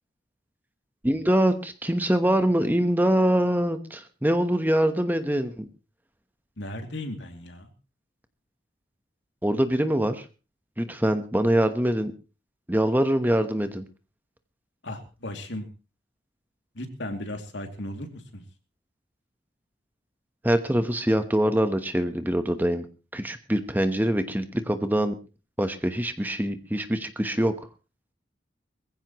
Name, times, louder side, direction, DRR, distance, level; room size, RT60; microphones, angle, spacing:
voice 1, 1.0-5.7 9.4-10.2 10.8-12.1 12.7-13.9 20.4-22.9 23.1-25.1 25.6-27.5, right 1 dB, 10° right, 9 dB, 1.0 m, -24 dB
voice 2, 6.6-7.7 14.8-15.7 16.7-18.4, left 1 dB, 75° left, 5 dB, 2.6 m, -36 dB
21.5 x 15.5 x 3.0 m, 0.32 s
head